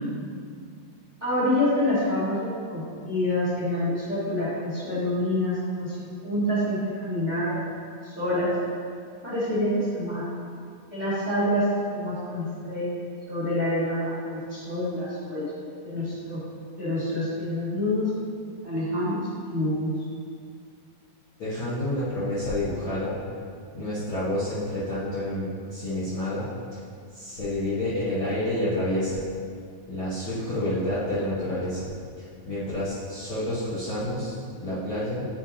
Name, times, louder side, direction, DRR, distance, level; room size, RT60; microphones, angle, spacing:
voice 1, 1.2-6.0 6.2-7.6 8.0-8.5 9.2-10.2 10.9-11.6 11.9-12.9 13.3-15.4 15.8-16.4 16.8-18.1 18.6-19.9, left 1 dB, 30° right, -12 dB, 1.2 m, -27 dB
voice 2, 21.4-23.2 23.7-26.4 26.7-26.8 27.1-29.2 29.9-31.9 32.2-35.3, left 1 dB, 55° left, -13 dB, 1.4 m, -29 dB
9.1 x 5.8 x 2.8 m, 2.2 s
omnidirectional pair, 4.2 m